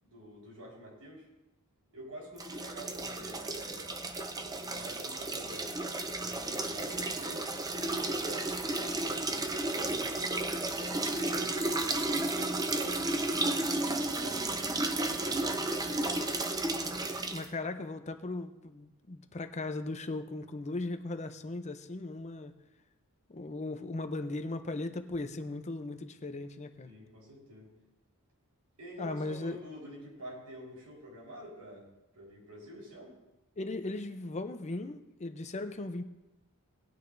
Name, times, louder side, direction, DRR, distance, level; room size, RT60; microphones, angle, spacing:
voice 1, 0.0-1.3 1.9-4.0 4.5-5.7 6.1-7.4 8.1-10.3 10.8-16.2 26.8-27.7 28.8-31.9 32.1-33.2, equal, 90° right, -3 dB, 4.3 m, -48 dB
sound 1, 2.4-17.5, right 2 dB, 15° right, 0.6 m, -33 dB
voice 2, 17.3-22.5 23.3-26.9 29.0-29.6 33.6-36.0, left 2 dB, 30° left, 8 dB, 0.6 m, -37 dB
19.0 x 9.6 x 2.6 m, 0.95 s
head